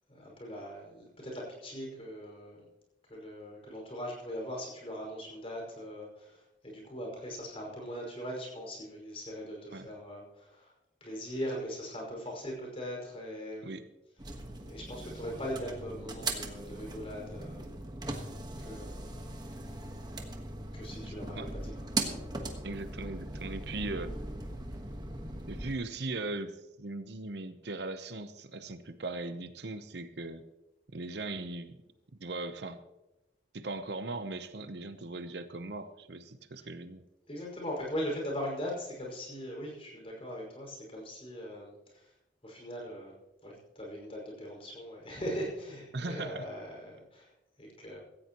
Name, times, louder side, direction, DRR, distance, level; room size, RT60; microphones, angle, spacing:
voice 1, 0.1-2.6 3.1-10.7 11.0-13.8 14.6-17.7 18.6-19.1 20.7-21.7 37.3-42.1 42.4-43.1 43.4-47.3 47.6-48.0, equal, 30° left, -1 dB, 5.5 m, -40 dB
sound 1, 14.2-25.7, right 2 dB, 20° right, 1.4 m, -39 dB
voice 2, 21.1-21.5 22.6-24.2 25.5-30.4 30.9-31.8 32.2-32.8 33.5-37.0 45.9-46.5, right 2 dB, 60° right, 10 dB, 0.8 m, -39 dB
16.5 x 15.0 x 3.0 m, 0.95 s
head